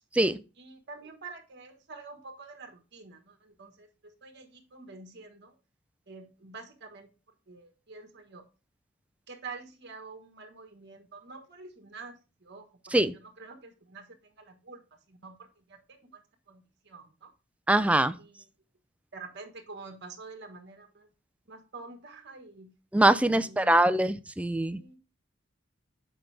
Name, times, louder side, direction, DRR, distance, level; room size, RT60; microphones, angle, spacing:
voice 1, 0.6-5.5 6.1-7.1 7.5-8.4 9.3-12.1 12.4-14.8 15.1-15.4 15.7-15.8 16.1-16.2 16.5-17.3 18.2-18.5 19.1-21.1 21.5-22.7 23.4-23.8 24.7-25.0, right 4 dB, 60° right, 1.4 m, -47 dB
voice 2, 17.7-18.2 22.9-24.8, right 1 dB, 5° right, 0.4 m, -23 dB
7.9 x 5.2 x 3.3 m
head